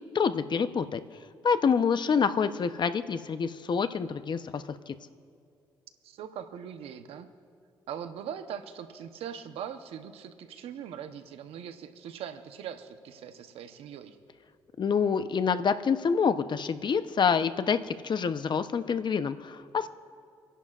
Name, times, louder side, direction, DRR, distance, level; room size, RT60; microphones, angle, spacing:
voice 1, 0.1-1.0 1.4-4.9 14.8-19.9, left 6 dB, 50° left, 11 dB, 0.8 m, -27 dB
voice 2, 6.0-7.3 7.9-14.2, right 8 dB, 80° right, 9 dB, 0.9 m, -41 dB
28.0 x 11.0 x 2.5 m, 2.4 s
supercardioid pair, 55°, 10 cm